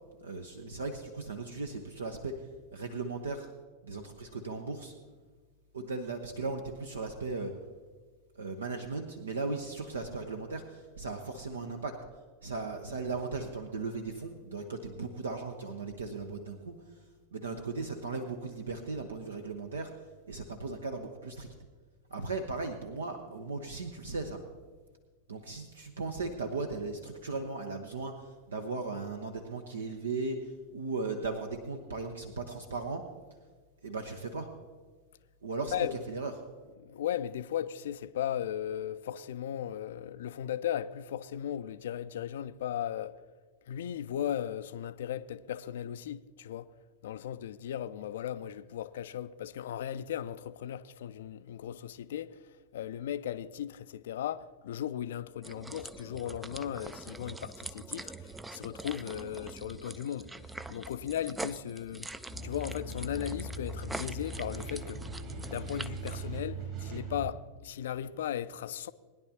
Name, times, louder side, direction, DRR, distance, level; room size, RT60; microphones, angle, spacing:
voice 1, 0.2-2.4 2.7-3.5 3.8-4.9 5.7-7.5 8.3-12.0 12.4-16.8 17.3-19.9 20.3-21.5 22.1-24.4 25.3-33.1 33.8-34.5 35.4-36.3, right 3 dB, 70° right, 0.9 m, -37 dB
voice 2, 36.8-43.2 43.7-46.7 47.0-62.1 62.4-65.0 65.5-68.9, left 10 dB, 60° left, 0.4 m, -37 dB
sound 1, 55.4-66.3, right 2 dB, 10° right, 0.4 m, -44 dB
sound 2, 62.3-67.3, right 2 dB, 40° right, 2.7 m, -40 dB
20.5 x 10.5 x 2.8 m
figure-of-eight pair, 90°, 0 cm